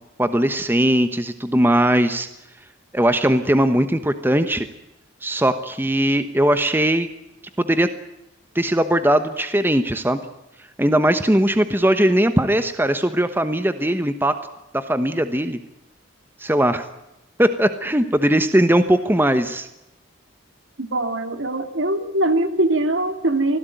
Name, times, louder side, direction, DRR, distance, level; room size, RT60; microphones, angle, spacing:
voice 1, 0.2-2.3 2.9-4.7 5.2-7.1 7.6-7.9 8.5-10.2 10.8-14.4 14.7-15.6 16.4-16.9 17.4-19.7, right 1 dB, 10° right, 10 dB, 1.1 m, -19 dB
voice 2, 20.8-23.6, right 1 dB, 65° right, 8 dB, 2.5 m, -22 dB
25.0 x 16.5 x 9.2 m, 0.89 s
head